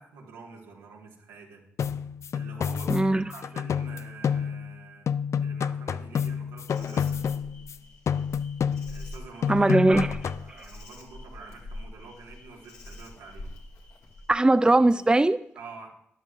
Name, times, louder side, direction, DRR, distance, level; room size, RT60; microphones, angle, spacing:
voice 1, 0.0-1.6 2.3-5.1 5.4-7.2 8.9-9.7 10.0-13.5 15.5-15.9, right 4 dB, 90° right, 1.7 m, -47 dB
sound 1, 1.8-4.8 5.1-7.8 8.1-9.1 9.4-10.5, left 7 dB, 60° left, 0.4 m, -29 dB
voice 2, 2.9-3.2 9.5-10.1 14.3-15.4, right 2 dB, 15° right, 0.4 m, -20 dB
Insect, 6.7-15.1, left 1 dB, 75° left, 1.9 m, -45 dB
13.0 x 11.0 x 2.5 m
supercardioid pair, 40°, 6 cm